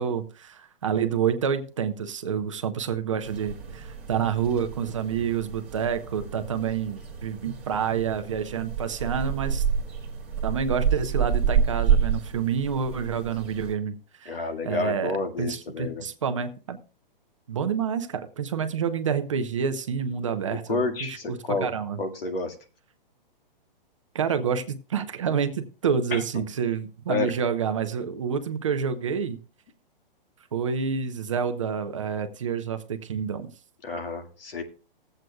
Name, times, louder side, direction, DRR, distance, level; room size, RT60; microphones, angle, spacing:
voice 1, 0.0-9.6 10.4-14.4 14.6-16.8 17.5-22.0 24.1-29.4 30.5-33.5, right 7 dB, 35° right, 9 dB, 0.6 m, -28 dB
sound 1, 3.2-13.7, right 7 dB, 5° right, 0.8 m, -29 dB
voice 2, 14.3-16.0 20.7-21.7 22.0-22.6 26.1-26.4 27.1-27.3 33.8-34.6, left 3 dB, 75° left, 5 dB, 1.9 m, -29 dB
19.5 x 7.8 x 2.3 m, 0.35 s
hypercardioid pair, 180°, 29 cm